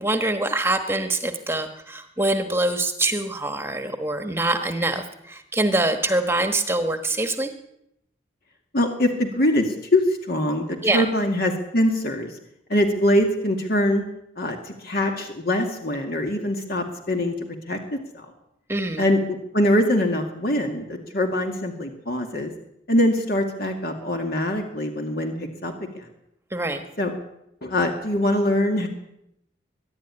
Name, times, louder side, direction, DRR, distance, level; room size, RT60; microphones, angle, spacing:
voice 1, 0.0-7.5 10.8-11.1 18.7-19.0 26.5-26.8, right 2 dB, 15° right, 7 dB, 1.2 m, -24 dB
voice 2, 8.7-12.4 12.7-14.0 14.4-17.3 17.7-18.3 19.0-22.5 22.9-26.0 27.0-27.1 27.6-28.9, left 1 dB, 60° left, 3 dB, 2.2 m, -23 dB
23.0 x 11.5 x 10.0 m, 0.81 s
head